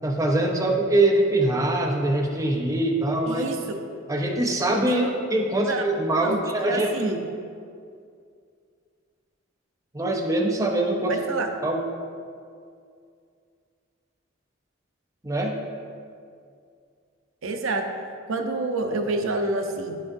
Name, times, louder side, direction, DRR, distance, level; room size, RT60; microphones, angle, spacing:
voice 1, 0.0-3.5 4.1-5.0 5.3-7.2 9.9-11.2 11.6-11.8 15.2-15.6, right 1 dB, 15° right, 0 dB, 0.6 m, -23 dB
voice 2, 3.3-3.8 4.9-5.1 5.6-5.8 6.2-6.4 6.6-7.2 11.1-11.5 17.4-17.8 18.3-19.9, right 2 dB, 75° right, 4 dB, 0.6 m, -28 dB
10.0 x 6.1 x 2.6 m, 2.3 s
head